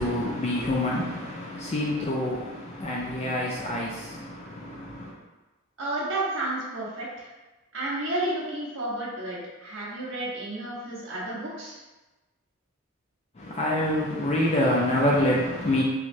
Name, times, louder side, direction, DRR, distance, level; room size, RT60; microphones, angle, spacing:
voice 1, 0.0-5.1 13.4-15.8, left 1 dB, 30° left, -3 dB, 0.4 m, -26 dB
voice 2, 5.8-7.3 7.7-11.8, right 1 dB, 65° right, -7 dB, 1.2 m, -31 dB
4.6 x 2.2 x 2.6 m, 1.1 s
head